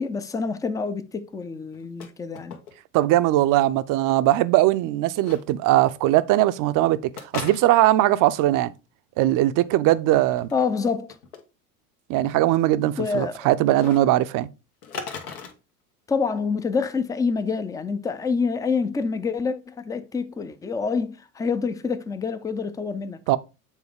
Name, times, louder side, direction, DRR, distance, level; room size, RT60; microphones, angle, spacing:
voice 1, 0.0-2.6 10.5-11.1 13.0-13.5 16.1-23.2, left 5 dB, 10° left, 0.4 m, -27 dB
sound 1, 1.7-2.1 2.3-3.0 3.3-3.4 5.2-5.4 7.2-8.0 10.2-10.6 11.1-11.4 13.8-14.0 14.8-15.5, left 5 dB, 85° left, 1.2 m, -36 dB
voice 2, 2.9-7.0 7.3-8.7 9.2-10.5 12.1-14.5 23.3-23.4, right 15 dB, 45° right, 0.5 m, -20 dB
7.3 x 3.7 x 3.5 m
hypercardioid pair, 75°, 46 cm